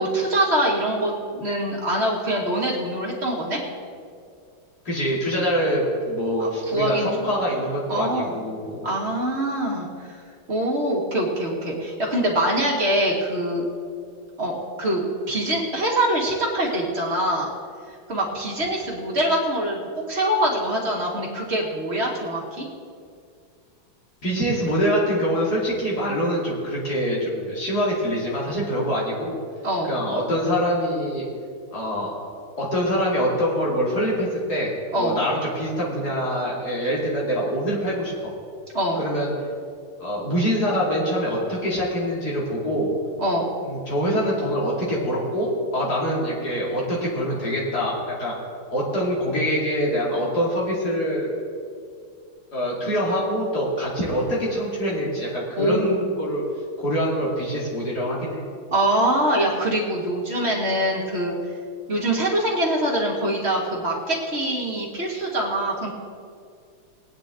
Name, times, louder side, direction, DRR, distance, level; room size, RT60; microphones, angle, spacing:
voice 1, 0.0-3.6 6.4-7.3 7.9-8.3 8.8-10.2 10.5-13.6 14.4-17.5 18.1-19.8 20.1-22.6 29.6-29.9 34.9-35.2 38.7-39.0 43.2-43.5 55.6-56.0 58.7-61.4 61.9-65.9, right 1 dB, 30° right, -3 dB, 2.3 m, -24 dB
voice 2, 4.8-8.9 24.2-29.4 29.8-31.2 31.7-32.2 32.6-34.7 35.0-38.3 38.9-39.3 40.0-42.9 43.6-48.3 48.7-51.3 52.5-56.4 56.8-58.5, equal, 50° left, -5 dB, 3.1 m, -24 dB
20.0 x 9.6 x 3.8 m, 2.2 s
omnidirectional pair, 2.3 m